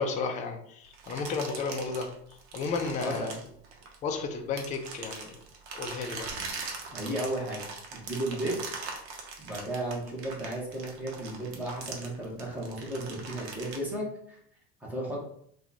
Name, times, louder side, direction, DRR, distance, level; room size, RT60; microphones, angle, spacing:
voice 1, 0.0-2.1 2.5-3.3 4.0-5.3 5.7-6.3, left 4 dB, 25° left, 3 dB, 0.4 m, -32 dB
sound 1, 0.9-4.1 4.6-13.8, right 4 dB, 60° right, 0.9 m, -41 dB
voice 2, 3.0-3.4 6.9-8.6 9.4-14.4 14.8-15.2, right 1 dB, 5° right, -4 dB, 1.0 m, -34 dB
2.9 x 2.3 x 3.9 m, 0.67 s
cardioid pair, 140°, 31 cm